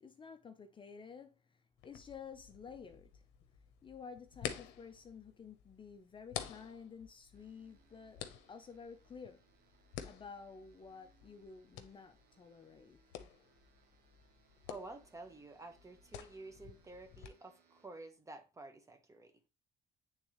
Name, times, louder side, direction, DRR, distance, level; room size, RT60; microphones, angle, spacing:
voice 1, 0.0-3.2 3.8-8.2 8.5-9.4 10.0-13.0, left 6 dB, 30° left, 0.6 m, -52 dB
sound 1, 1.8-17.3, left 10 dB, 90° left, 0.7 m, -50 dB
sound 2, 7.3-17.9, right 6 dB, 65° right, 1.3 m, -72 dB
voice 2, 14.7-19.3, right 2 dB, 20° right, 1.1 m, -51 dB
8.9 x 3.5 x 3.0 m
cardioid pair, 110°, 17 cm